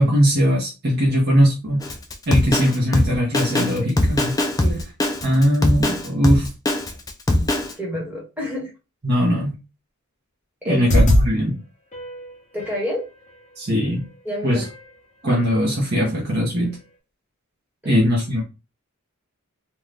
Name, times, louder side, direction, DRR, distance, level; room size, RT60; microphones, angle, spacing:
voice 1, 0.0-1.8 2.3-4.3 5.2-6.5 9.0-9.6 10.6-11.6 13.6-14.0 14.4-14.7 15.2-16.8 17.8-18.4, equal, 45° right, -4 dB, 0.8 m, -20 dB
Drum kit, 1.8-7.7, left 1 dB, 15° left, 0.3 m, -21 dB
voice 2, 7.8-8.7 10.6-10.9 12.5-13.1 14.2-14.7 17.8-18.1, equal, 5° right, -3 dB, 1.1 m, -28 dB
sound 1, 10.7-11.3 11.9-12.9 14.0-14.1 14.6-14.9 15.3-15.6 16.0-16.1, equal, 30° left, 0.7 m, -21 dB
2.6 x 2.2 x 3.2 m, 0.29 s
head